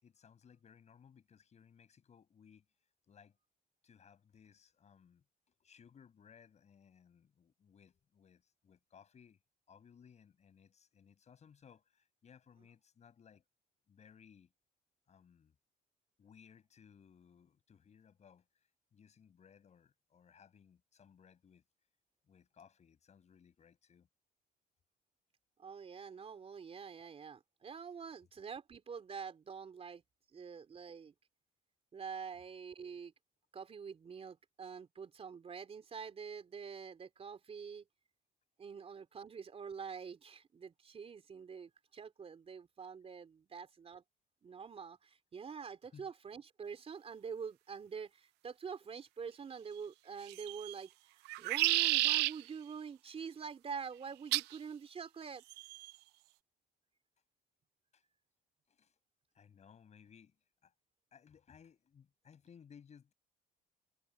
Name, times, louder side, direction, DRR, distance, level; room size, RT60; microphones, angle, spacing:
voice 1, 0.0-2.6 3.1-3.4 3.8-9.4 9.7-13.4 13.9-14.5 15.1-15.5 16.2-18.5 18.9-21.6 22.3-24.1 32.3-32.5 45.9-46.1 57.9-58.0 58.7-58.9 59.3-60.4 60.6-60.7 61.1-63.1, left 7 dB, 40° left, 6.4 m, -62 dB
voice 2, 25.6-30.0 30.3-31.1 31.9-33.1 33.5-37.8 38.6-44.0 44.4-50.9 51.4-55.4, right 6 dB, 35° right, 3.7 m, -46 dB
sound 1, 50.3-50.7 51.3-52.3 54.3-54.6 55.5-55.9, right 19 dB, 90° right, 0.5 m, -31 dB
cardioid pair, 110°, 17 cm